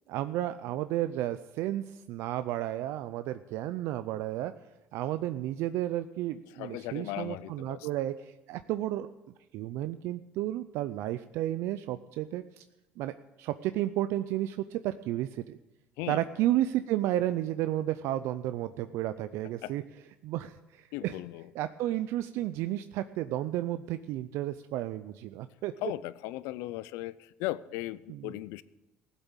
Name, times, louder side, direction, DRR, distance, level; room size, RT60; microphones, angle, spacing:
voice 1, 0.1-4.5 4.9-8.1 8.5-9.1 9.5-12.6 13.0-13.1 13.4-15.6 16.1-19.8 20.2-21.1 21.6-25.7, right 13 dB, 75° right, 11 dB, 0.5 m, -32 dB
voice 2, 6.5-7.9 16.0-16.2 19.6-19.8 20.9-21.5 25.8-28.6, left 17 dB, 85° left, 18 dB, 0.5 m, -37 dB
15.0 x 8.2 x 7.3 m, 1.0 s
supercardioid pair, 95°, 5 cm